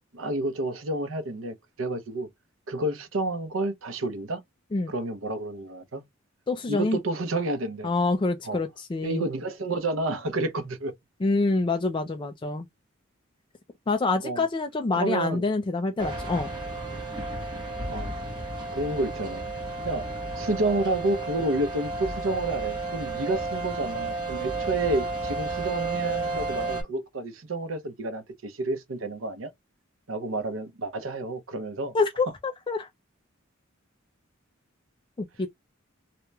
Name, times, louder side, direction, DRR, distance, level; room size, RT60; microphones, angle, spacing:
voice 1, 0.1-2.3 2.7-4.4 4.9-6.1 6.7-7.9 8.4-8.6 9.0-10.9 14.2-14.5 14.9-15.4 17.9-18.1 18.7-19.4 19.8-20.1 20.4-29.5 30.1-32.0, right 2 dB, 75° right, 0.7 m, -30 dB
voice 2, 6.5-7.0 7.8-9.2 11.2-12.7 13.9-16.5 31.9-32.9 35.2-35.5, left 3 dB, 25° left, 0.4 m, -26 dB
sound 1, 16.0-26.8, right 3 dB, 20° right, 1.3 m, -32 dB
3.0 x 2.9 x 2.2 m
head